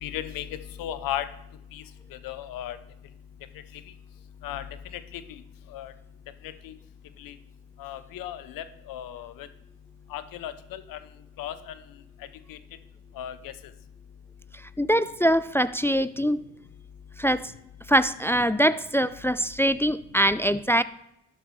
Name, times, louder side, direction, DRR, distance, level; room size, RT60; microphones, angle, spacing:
voice 1, 0.0-0.5 0.8-1.3 1.7-1.8 2.2-2.8 4.4-4.6 5.1-5.2 5.7-5.9 6.6-6.7 7.2-7.3 7.8-9.5 10.1-11.0 11.4-11.6 12.5-12.6 13.2-13.5, left 11 dB, 85° left, 13 dB, 0.7 m, -35 dB
voice 2, 14.8-16.4 17.2-17.5 17.9-20.8, equal, 10° left, 15 dB, 0.3 m, -23 dB
12.0 x 8.3 x 3.2 m, 0.82 s
supercardioid pair, 45°, 33 cm